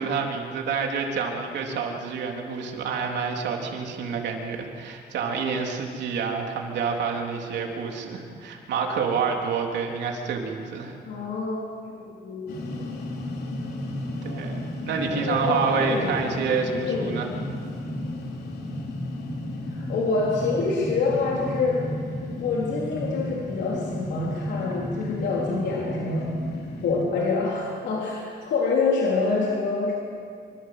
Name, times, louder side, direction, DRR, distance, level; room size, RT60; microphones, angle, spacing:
voice 1, 0.0-10.9 14.2-17.3, right 5 dB, 90° right, 1 dB, 3.5 m, -28 dB
voice 2, 11.1-11.6 11.9-12.9 15.1-17.2 19.7-21.9 22.4-26.3 26.8-30.0, left 4 dB, 90° left, -3 dB, 3.7 m, -27 dB
sound 1, 12.5-27.1, left 1 dB, 65° left, 4.6 m, -33 dB
26.5 x 25.0 x 7.9 m, 2.3 s
cardioid pair, 170°, 18 cm